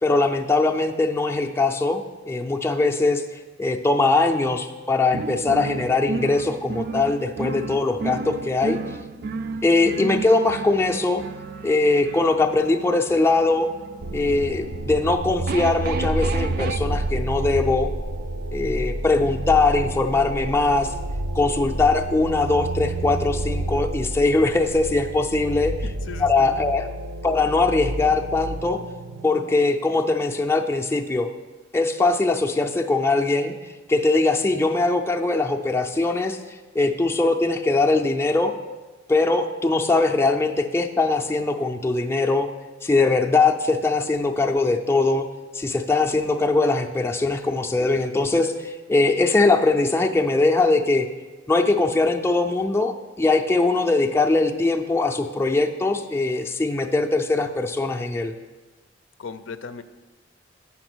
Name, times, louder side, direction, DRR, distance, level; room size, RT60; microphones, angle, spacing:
voice 1, 0.0-3.2 3.6-8.8 9.6-11.2 11.6-13.7 14.1-17.9 18.5-20.9 21.3-25.7 26.2-26.9 27.2-28.8 29.2-31.3 31.7-33.5 33.9-36.4 36.7-38.5 39.1-42.5 42.8-45.3 45.5-51.1 51.5-58.3, left 3 dB, 15° left, 3 dB, 0.5 m, -21 dB
sound 1, 5.1-16.8, right 4 dB, 50° right, 0.3 m, -33 dB
sound 2, 14.0-29.6, right 2 dB, 80° right, 0.7 m, -30 dB
voice 2, 26.1-26.5 59.2-59.8, left 5 dB, 75° left, 10 dB, 0.5 m, -36 dB
8.5 x 5.8 x 6.1 m, 1.2 s
head